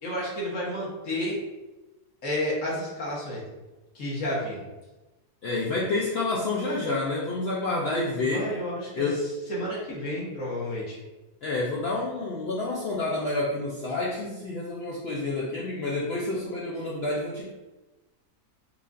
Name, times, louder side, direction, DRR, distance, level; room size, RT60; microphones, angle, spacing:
voice 1, 0.0-1.4 2.2-3.4 3.9-4.7 8.2-9.1 9.5-11.0, left 1 dB, 55° left, -6 dB, 1.3 m, -31 dB
voice 2, 5.4-8.5 8.9-9.3 11.4-17.5, left 2 dB, 80° left, -4 dB, 0.5 m, -29 dB
4.8 x 2.5 x 2.5 m, 1.1 s
omnidirectional pair, 1.7 m